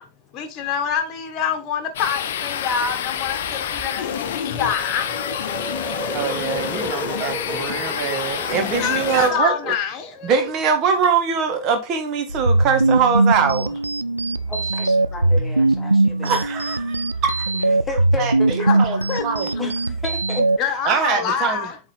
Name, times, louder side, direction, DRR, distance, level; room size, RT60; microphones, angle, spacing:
voice 1, 0.3-5.1 8.5-10.5 14.8-14.9 18.6-19.2 20.6-21.8, left 7 dB, 35° left, 1.4 m, -26 dB
sound 1, 1.9-9.3, left 9 dB, 55° left, 0.7 m, -28 dB
sound 2, 2.9-9.5, right 2 dB, 10° right, 0.5 m, -35 dB
voice 2, 6.1-9.7 10.2-13.8 16.2-17.5 18.2-19.0 19.2-19.7 20.8-21.6, right 6 dB, 35° right, 1.6 m, -23 dB
sound 3, 12.3-20.6, right 2 dB, 85° right, 0.3 m, -20 dB
voice 3, 14.5-16.5 17.5-18.7 19.6-20.5, left 2 dB, 15° left, 1.4 m, -32 dB
8.0 x 3.8 x 3.5 m
figure-of-eight pair, 90°, 0 cm